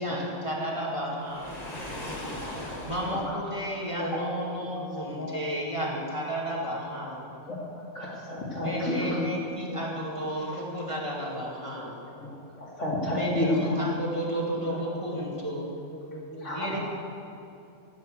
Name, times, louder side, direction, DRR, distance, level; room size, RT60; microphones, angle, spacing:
voice 1, 0.0-1.5 2.8-7.2 8.5-12.0 13.1-15.7 16.5-16.8, equal, 25° right, -4 dB, 2.5 m, -32 dB
Waves surf, 1.2-3.3, left 1 dB, 30° left, 2.3 m, -39 dB
voice 2, 1.5-2.7 4.0-4.5 4.8-5.9 6.5-6.6 8.6-9.1 9.4-10.3 10.6-10.7 11.3-11.4 11.8-11.9 13.3-13.5 14.0-14.3 15.5-15.6 15.9-16.7, left 1 dB, 10° left, -2 dB, 1.6 m, -39 dB
voice 3, 2.2-2.8 3.1-3.4 4.1-4.2 7.5-9.2 12.2-13.8 14.3-14.4 16.4-16.8, left 1 dB, 70° left, -5 dB, 3.5 m, -31 dB
17.5 x 7.6 x 7.8 m, 2.6 s
omnidirectional pair, 1.3 m